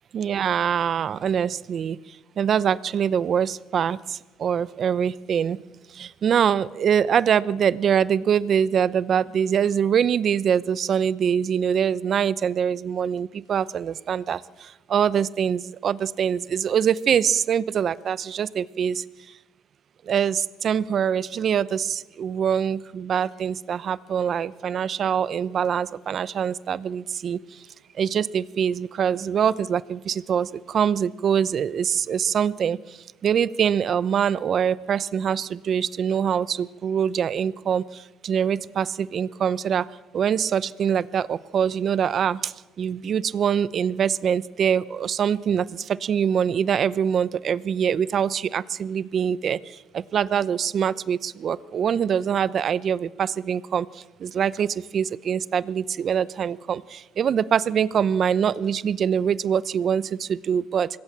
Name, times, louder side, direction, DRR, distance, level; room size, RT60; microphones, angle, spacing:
voice 1, 0.1-2.0 2.4-5.6 5.9-19.0 20.1-27.4 28.0-33.0 33.2-39.9 40.1-53.9 54.2-60.9, right 8 dB, 50° right, 18 dB, 0.8 m, -24 dB
25.5 x 21.5 x 7.5 m, 1.2 s
cardioid pair, 105°, 0 cm